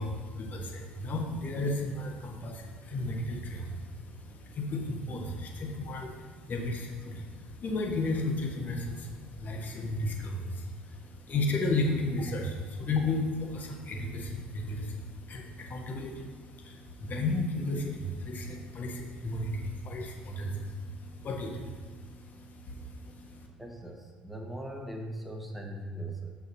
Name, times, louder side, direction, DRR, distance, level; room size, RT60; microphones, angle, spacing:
voice 1, 0.0-23.5, left 2 dB, 40° left, 1 dB, 1.4 m, -34 dB
voice 2, 23.6-26.3, right 1 dB, ahead, 1 dB, 1.6 m, -39 dB
9.4 x 7.8 x 2.9 m, 1.5 s
figure-of-eight pair, 55°, 4 cm